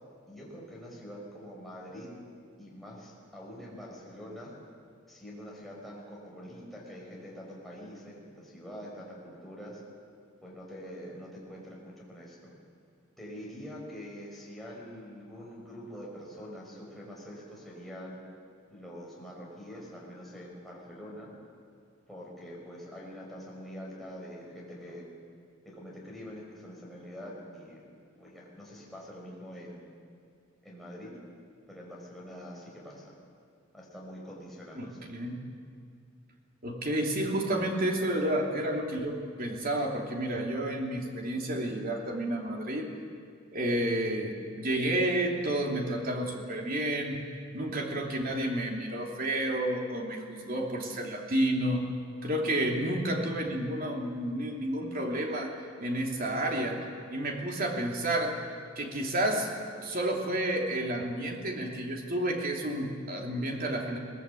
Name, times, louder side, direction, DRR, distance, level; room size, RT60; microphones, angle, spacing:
voice 1, 0.3-2.2 2.6-4.5 5.1-9.8 10.4-12.6 13.2-18.2 18.7-21.3 22.1-25.1 25.6-27.8 28.2-29.8 30.6-31.1 31.7-33.0 33.7-35.0, equal, ahead, -5 dB, 5.8 m, -45 dB
voice 2, 34.8-35.4 36.6-42.9 43.5-47.2 47.5-51.9 52.2-55.5 55.8-56.8 57.1-58.4 58.8-64.0, right 1 dB, 45° right, 1 dB, 3.1 m, -30 dB
22.5 x 18.5 x 8.5 m, 2.4 s
head